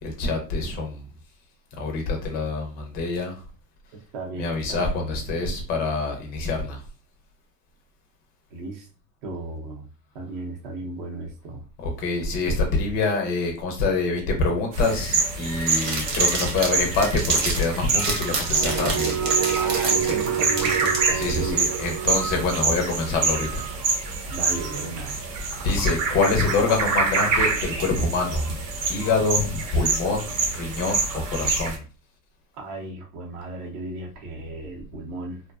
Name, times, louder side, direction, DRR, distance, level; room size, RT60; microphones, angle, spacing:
voice 1, 0.0-1.0 1.8-3.4 4.4-6.8 11.8-19.2 21.1-23.6 25.6-28.6 28.9-31.8, left 3 dB, 20° left, 2 dB, 0.3 m, -25 dB
voice 2, 4.1-5.2 8.5-8.9 9.2-9.9 10.1-11.7 19.6-21.6 24.3-25.2 32.5-35.4, right 2 dB, 50° right, 1 dB, 0.7 m, -35 dB
sound 1, 14.7-31.8, right 4 dB, 70° right, 0.9 m, -26 dB
sound 2, 15.6-21.2, right 3 dB, 85° right, 1.2 m, -29 dB
sound 3, 18.5-24.4, right 8 dB, 10° right, 0.7 m, -29 dB
2.6 x 2.1 x 2.2 m, 0.36 s
supercardioid pair, 130°, 47 cm